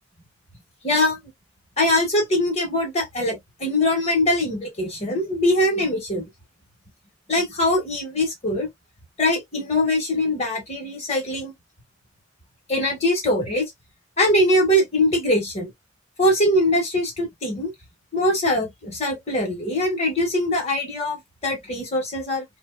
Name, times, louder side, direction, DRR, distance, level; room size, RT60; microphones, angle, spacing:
voice 1, 0.8-1.2 1.8-6.2 7.3-8.7 9.2-11.5 12.7-13.7 14.2-15.7 16.2-17.7 18.1-22.4, left 1 dB, 35° left, 1.4 m, -22 dB
2.9 x 2.7 x 2.2 m
head